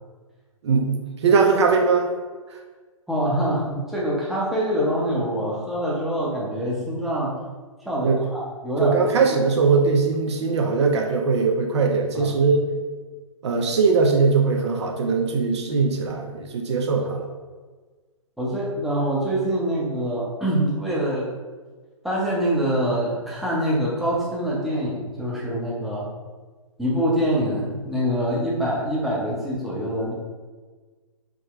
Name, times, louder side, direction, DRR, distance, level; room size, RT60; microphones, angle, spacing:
voice 1, 0.6-2.1 8.0-8.2 8.8-12.7 13.4-17.3, right 4 dB, 50° right, 2 dB, 0.5 m, -20 dB
voice 2, 3.1-7.3 7.8-9.0 9.3-9.4 12.1-12.4 18.4-21.3 22.0-26.1 26.8-30.1, equal, ahead, -6 dB, 0.6 m, -25 dB
3.6 x 2.1 x 3.6 m, 1.4 s
figure-of-eight pair, 130°, 18 cm